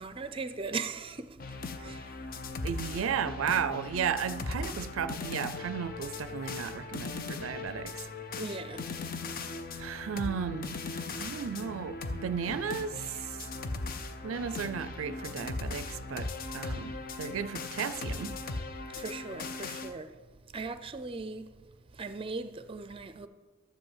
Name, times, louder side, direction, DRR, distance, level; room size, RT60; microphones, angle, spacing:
voice 1, 0.0-2.0 8.3-8.9 18.9-20.2 20.5-21.5 21.9-23.3, right 4 dB, 25° right, 0.5 m, -39 dB
sound 1, 1.4-19.9, left 3 dB, 45° left, 0.6 m, -39 dB
voice 2, 2.6-7.9 9.8-13.4 14.2-16.3 16.5-18.3, right 7 dB, 80° right, 0.4 m, -34 dB
11.5 x 5.2 x 7.4 m
head